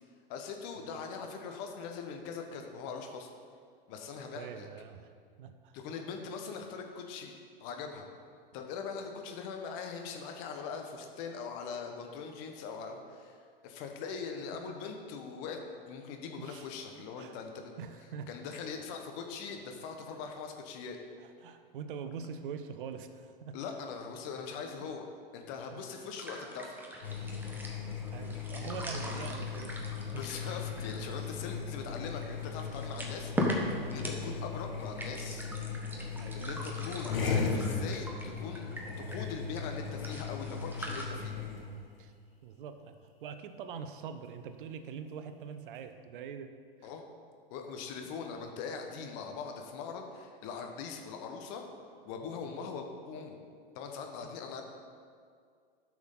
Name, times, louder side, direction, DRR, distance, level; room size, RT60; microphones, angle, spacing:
voice 1, 0.3-3.3 3.9-4.7 5.7-7.3 7.6-8.1 8.5-17.7 18.3-21.0 23.5-25.1 25.3-26.8 29.0-29.3 30.1-35.5 36.3-38.7 39.0-41.4 46.8-47.1 47.5-51.6 52.0-53.4 53.7-54.6, left 5 dB, 45° left, 4 dB, 1.3 m, -41 dB
voice 2, 4.4-5.1 5.4-5.8 16.4-16.7 17.2-17.4 17.8-18.6 21.2-23.6 24.8-24.9 25.7-26.1 28.1-30.5 31.2-31.3 32.1-32.2 36.2-36.7 42.0-42.1 42.4-46.5 46.8-46.9 48.0-48.1 52.4-52.7 54.2-54.3, right 6 dB, 65° right, 9 dB, 0.8 m, -44 dB
sound 1, 25.9-41.1, equal, 5° right, 1.2 m, -41 dB
sound 2, 27.0-41.8, left 5 dB, 75° left, 1.7 m, -37 dB
12.0 x 6.2 x 3.9 m, 2.1 s
hypercardioid pair, 100°, 29 cm